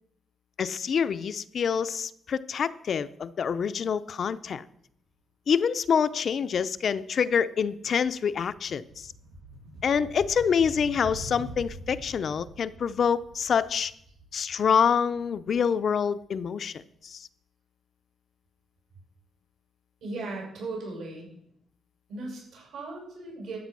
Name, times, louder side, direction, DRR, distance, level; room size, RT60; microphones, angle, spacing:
voice 1, 0.6-4.6 5.5-9.1 9.8-13.9 14.3-17.3, left 7 dB, 50° left, 13 dB, 0.5 m, -26 dB
sound 1, 6.7-7.0 7.3-16.2, right 1 dB, 90° right, 6.8 m, -45 dB
voice 2, 20.0-21.3 22.1-23.6, right 3 dB, 75° right, -1 dB, 6.7 m, -37 dB
12.5 x 8.6 x 6.1 m, 0.71 s
cardioid pair, 135°, 0 cm